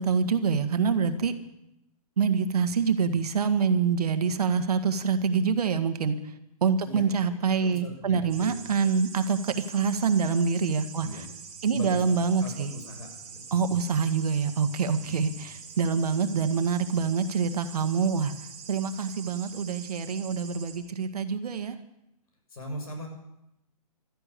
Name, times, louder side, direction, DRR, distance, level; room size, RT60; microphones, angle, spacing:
voice 1, 0.0-1.3 2.2-6.2 6.6-11.2 11.6-12.7 13.5-18.3 18.7-21.8, right 6 dB, 75° right, 8 dB, 1.7 m, -26 dB
voice 2, 7.3-8.6 11.0-11.3 11.7-13.4 15.0-15.4 22.5-23.1, left 1 dB, 70° left, 4 dB, 6.6 m, -40 dB
sound 1, 8.3-20.8, right 6 dB, 20° right, 2.9 m, -45 dB
15.5 x 13.0 x 6.9 m, 0.85 s
hypercardioid pair, 180°, 20 cm